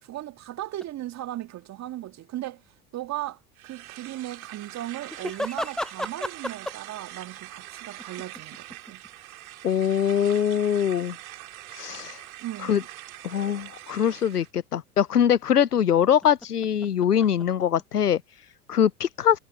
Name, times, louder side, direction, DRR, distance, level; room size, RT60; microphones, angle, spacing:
voice 1, 0.0-2.6 2.9-9.0 12.4-12.8, right 14 dB, 35° right, 1.8 m, -37 dB
sound 1, 0.8-0.9 5.1-7.0 8.0-9.1 9.8-9.9 10.8-10.9 15.7-18.1, left 1 dB, ahead, 0.5 m, -34 dB
sound 2, 3.6-14.5, right 15 dB, 65° right, 3.6 m, -43 dB
voice 2, 9.6-11.2 11.7-12.2 12.6-12.8 13.2-19.4, left 9 dB, 85° left, 0.6 m, -23 dB
figure-of-eight pair, 75°, 46 cm